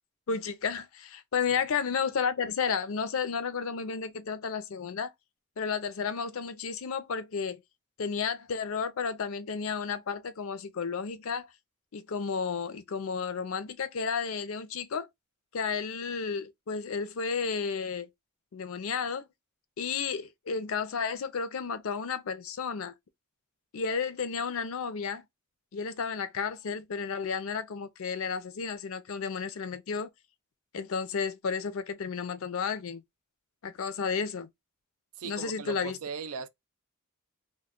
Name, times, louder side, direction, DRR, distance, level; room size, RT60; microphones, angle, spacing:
voice 1, 0.3-5.1 5.6-7.6 8.0-11.5 11.9-15.1 15.5-18.1 18.5-19.3 19.8-22.9 23.7-25.2 25.7-30.1 30.7-33.0 33.6-34.5 35.2-36.0, left 6 dB, 70° left, 0.5 m, -32 dB
voice 2, 35.2-36.5, right 6 dB, 80° right, 0.4 m, -38 dB
2.2 x 2.1 x 3.5 m
head